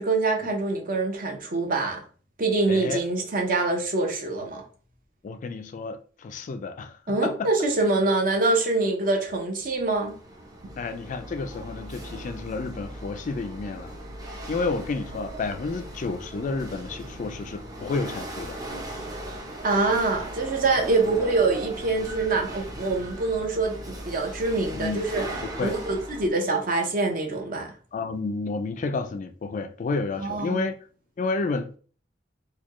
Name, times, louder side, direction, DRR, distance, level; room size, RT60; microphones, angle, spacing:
voice 1, 0.0-2.0 2.4-4.6 7.1-10.1 10.6-10.7 19.6-25.3 25.6-27.7 30.2-30.7, right 3 dB, 50° right, 0.8 m, -25 dB
voice 2, 2.7-3.0 5.2-7.5 10.8-14.0 14.5-18.6 24.7-25.0 25.6-25.7 27.9-30.7 31.2-31.8, left 3 dB, 40° left, 0.3 m, -30 dB
Chatter / Hiss / Rattle, 9.4-26.3, right 1 dB, 20° right, 0.6 m, -38 dB
4.1 x 2.3 x 3.0 m
head